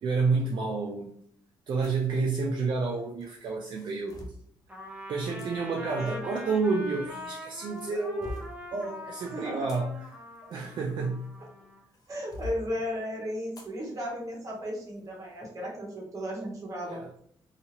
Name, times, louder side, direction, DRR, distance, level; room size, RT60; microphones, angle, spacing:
voice 1, 0.0-1.1 1.7-4.3 5.1-8.4 8.7-10.0 10.5-11.3 16.9-17.1, right 4 dB, 55° right, 0 dB, 0.4 m, -30 dB
sound 1, 1.8-2.1 3.2-4.4 5.4-5.5 6.6-7.3 7.7-8.6 9.4-11.5 11.9-12.6 13.5-13.8 14.2-14.3 14.9-15.1, left 1 dB, 40° left, 0.5 m, -43 dB
Trumpet, 4.7-11.8, left 1 dB, 15° right, 0.7 m, -43 dB
voice 2, 9.2-9.7 12.1-17.0, equal, 35° right, -2 dB, 0.9 m, -35 dB
2.7 x 2.4 x 2.8 m, 0.67 s
cardioid pair, 135°, 9 cm